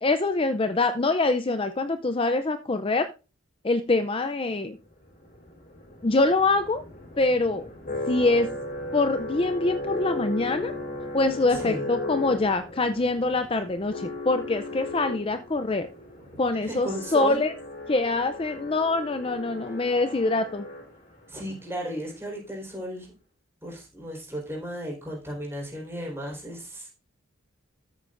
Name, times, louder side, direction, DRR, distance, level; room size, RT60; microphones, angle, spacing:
voice 1, 0.0-3.1 3.6-4.8 6.0-6.8 7.2-7.7 8.1-8.5 8.9-10.7 11.1-15.9 16.4-17.5 17.9-20.7, left 2 dB, 25° left, 9 dB, 0.5 m, -24 dB
sound 1, 5.1-21.3, left 2 dB, 45° left, 4.1 m, -36 dB
voice 2, 11.5-11.9 16.2-16.3 16.6-17.4 21.3-23.1 23.6-26.9, equal, 10° right, -2 dB, 4.3 m, -35 dB
13.0 x 8.5 x 2.6 m, 0.31 s
head